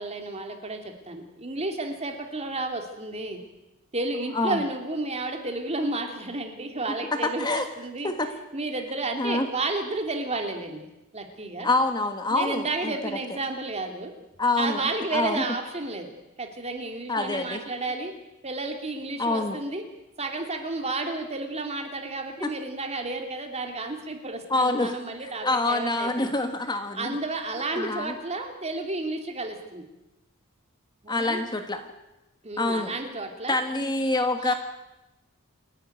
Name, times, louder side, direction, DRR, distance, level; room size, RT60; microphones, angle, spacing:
voice 1, 0.0-3.4 3.9-8.1 8.5-10.9 11.1-11.7 12.3-14.1 14.6-16.1 16.4-18.1 18.4-19.8 20.2-26.3 26.9-29.8 31.0-31.4 32.4-33.6 34.4-34.5, right 2 dB, 30° right, 4 dB, 3.1 m, -32 dB
voice 2, 4.3-4.6 7.2-7.6 8.0-8.3 9.2-9.5 11.6-12.9 14.4-14.8 15.1-15.4 17.1-17.6 19.2-19.6 22.4-22.5 24.5-25.0 25.2-27.2 27.7-28.1 31.1-31.8 32.6-32.9 33.5-34.5, left 2 dB, 20° left, 7 dB, 1.4 m, -26 dB
28.5 x 11.5 x 9.4 m, 0.98 s
head